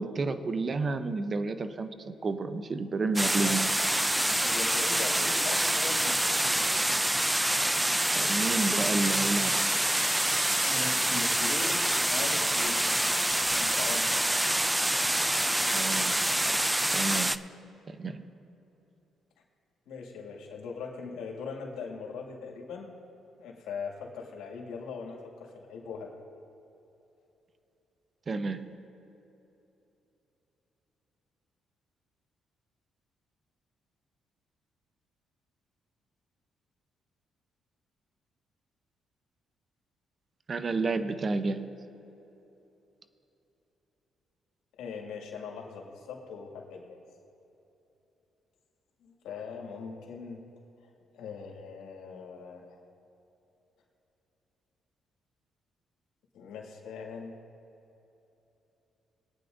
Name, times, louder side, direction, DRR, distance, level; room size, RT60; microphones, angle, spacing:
voice 1, 0.0-3.7 8.2-9.7 15.7-16.2 16.9-17.4 17.9-18.2 28.3-28.7 40.5-41.7, right 3 dB, 40° right, 10 dB, 0.7 m, -30 dB
sound 1, 3.2-17.4, right 1 dB, 10° right, 0.3 m, -26 dB
voice 2, 4.4-6.8 10.6-12.8 13.5-14.3 19.9-22.9 23.4-26.1 44.8-47.0 49.0-50.4 51.1-52.8 56.3-57.3, left 5 dB, 90° left, -1 dB, 2.2 m, -40 dB
22.0 x 9.3 x 2.7 m, 3.0 s
cardioid pair, 90°, 0 cm